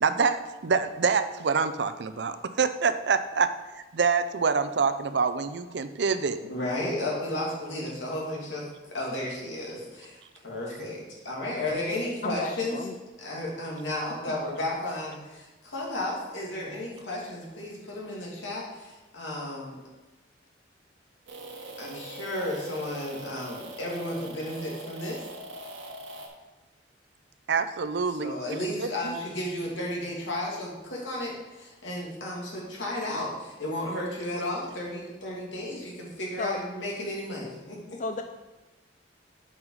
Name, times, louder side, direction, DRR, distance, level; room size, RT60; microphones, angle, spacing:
voice 1, 0.0-6.4 27.5-28.3 29.0-29.1, right 5 dB, 65° right, 11 dB, 0.5 m, -26 dB
voice 2, 6.5-12.9 13.2-19.8 21.8-25.2 28.1-38.0, left 1 dB, 85° left, -3 dB, 2.5 m, -33 dB
voice 3, 12.2-12.9 36.4-36.6 38.0-38.2, left 4 dB, 40° left, 7 dB, 0.3 m, -33 dB
sound 1, 21.3-26.3, right 1 dB, 80° right, 1.5 m, -42 dB
8.0 x 5.5 x 4.8 m, 1.1 s
head